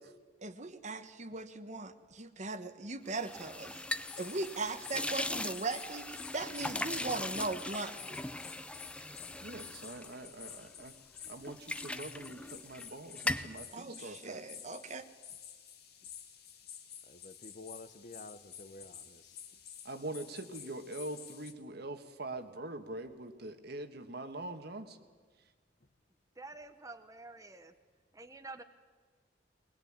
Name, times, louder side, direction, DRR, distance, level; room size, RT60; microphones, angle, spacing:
voice 1, 0.4-3.8 4.2-8.2 13.7-15.0, right 3 dB, 40° right, 11 dB, 1.3 m, -39 dB
sound 1, 3.1-10.9 11.2-12.9 13.2-13.6, left 1 dB, 5° left, 0.6 m, -40 dB
sound 2, 3.9-21.5, left 8 dB, 60° left, 2.3 m, -51 dB
voice 2, 9.4-10.9 11.3-14.6 19.8-25.0, right 2 dB, 60° right, 8 dB, 1.7 m, -43 dB
voice 3, 17.1-19.4, left 2 dB, 45° left, 13 dB, 0.9 m, -50 dB
voice 4, 26.4-27.7 28.1-28.6, right 3 dB, 20° right, 8 dB, 1.0 m, -48 dB
22.0 x 21.0 x 8.9 m, 1.4 s
head